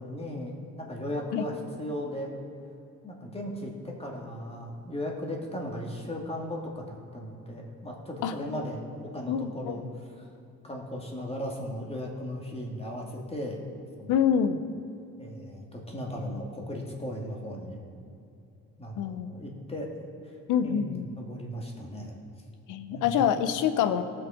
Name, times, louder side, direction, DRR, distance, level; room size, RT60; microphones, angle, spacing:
voice 1, 0.0-2.3 3.0-8.8 9.1-10.2 10.6-13.6 14.0-14.2 15.2-17.8 18.8-19.9 20.2-22.1 22.9-23.2, left 1 dB, 20° left, -1 dB, 2.1 m, -37 dB
voice 2, 9.3-9.8 14.1-14.6 19.0-19.3 20.5-21.1 22.7-24.0, left 8 dB, 85° left, 11 dB, 0.7 m, -26 dB
17.5 x 6.4 x 5.0 m, 2.6 s
cardioid pair, 90°, 30 cm